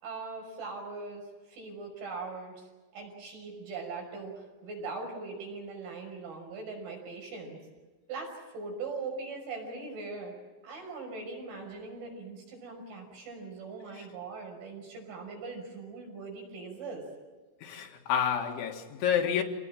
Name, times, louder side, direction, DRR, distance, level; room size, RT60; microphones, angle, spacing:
voice 1, 0.0-7.6 8.1-10.4 10.6-17.0, right 4 dB, 65° right, 8.2 m, -41 dB
voice 2, 17.6-19.4, left 8 dB, 70° left, 4.2 m, -29 dB
27.0 x 19.0 x 8.9 m
omnidirectional pair, 5.8 m